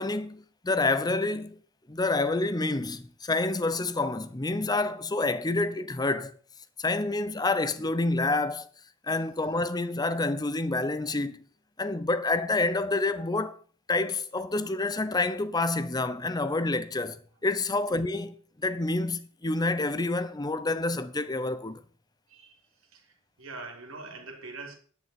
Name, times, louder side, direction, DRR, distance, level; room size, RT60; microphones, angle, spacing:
voice 1, 0.0-1.6 1.9-6.3 6.8-8.7 9.0-11.4 11.8-13.6 13.9-17.2 17.4-21.8, left 2 dB, 20° left, 0.7 m, -28 dB
voice 2, 22.3-24.7, right 3 dB, 70° right, 2.9 m, -44 dB
10.5 x 9.1 x 4.4 m
head